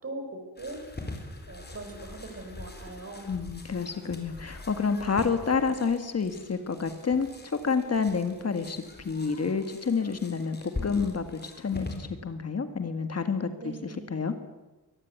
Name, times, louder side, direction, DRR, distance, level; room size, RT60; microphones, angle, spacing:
voice 1, 0.0-0.8 1.5-3.3 13.6-14.2, right 2 dB, 40° right, 5 dB, 5.2 m, -41 dB
sound 1, 0.6-12.0, left 2 dB, 25° left, 4.2 m, -43 dB
voice 2, 3.3-10.6 10.8-14.3, left 5 dB, 45° left, 9 dB, 1.8 m, -29 dB
23.5 x 18.5 x 9.4 m, 1.1 s
wide cardioid pair, 160°, 37 cm